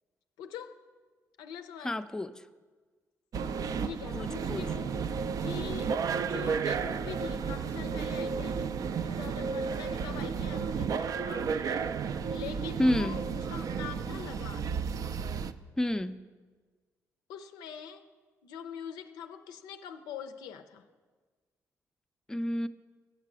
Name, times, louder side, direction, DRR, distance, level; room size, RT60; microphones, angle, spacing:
voice 1, 0.4-0.8 1.4-2.0 3.8-5.1 5.4-11.9 12.3-14.9 17.3-18.0 18.4-20.9, left 8 dB, 90° left, 9 dB, 0.4 m, -44 dB
voice 2, 1.8-2.4 4.1-4.7 12.8-13.2 15.8-16.2 22.3-22.7, left 1 dB, 10° left, 10 dB, 0.4 m, -29 dB
sound 1, 3.3-15.5, right 6 dB, 60° right, 0.4 m, -32 dB
7.3 x 6.7 x 6.0 m, 1.4 s
supercardioid pair, 55°, 7 cm